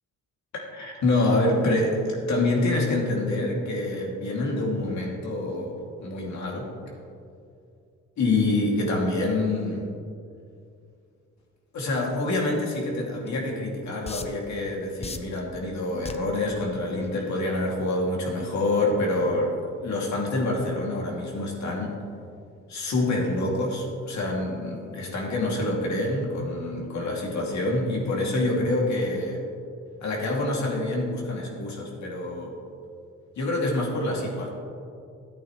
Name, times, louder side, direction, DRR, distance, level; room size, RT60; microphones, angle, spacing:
voice 1, 0.5-6.7 8.2-9.8 11.7-19.5 19.8-21.9 22.7-29.4 30.0-32.5 33.4-34.5, left 2 dB, 65° left, -2 dB, 2.4 m, -26 dB
sound 1, 13.3-13.4 14.1-14.5 15.0-15.4 16.1-16.4 17.0-17.2, left 4 dB, 20° left, 0.7 m, -35 dB
13.5 x 8.6 x 3.1 m, 2.4 s
cardioid pair, 90°, 30 cm